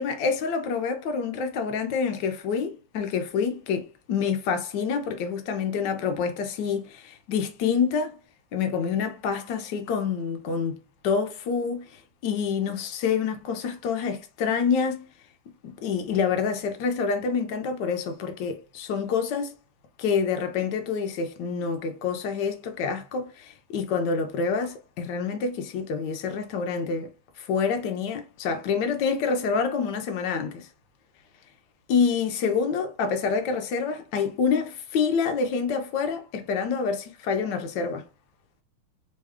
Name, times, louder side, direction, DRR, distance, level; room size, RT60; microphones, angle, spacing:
voice 1, 0.0-8.2 8.5-10.8 11.0-15.1 15.6-19.5 20.0-27.1 27.4-30.7 31.9-38.0, left 5 dB, 70° left, 1.1 m, -27 dB
3.5 x 2.2 x 3.5 m
omnidirectional pair, 2.3 m